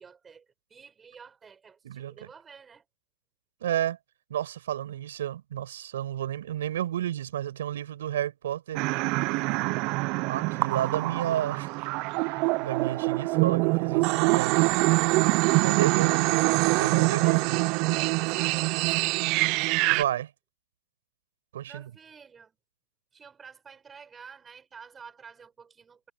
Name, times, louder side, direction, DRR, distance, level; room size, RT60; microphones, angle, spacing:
voice 1, 0.0-2.8 15.1-16.6 17.2-17.5 17.9-19.8 21.6-22.6 23.1-26.1, right 6 dB, 15° right, 7.6 m, -49 dB
voice 2, 3.6-4.0 4.3-8.8 10.3-11.7 12.2-14.6 15.5-16.4 16.8-17.6 19.9-20.3 21.5-21.8, right 11 dB, 75° right, 6.4 m, -31 dB
sound 1, 8.8-20.0, right 26 dB, 35° right, 0.3 m, -25 dB
supercardioid pair, 155°, 0 cm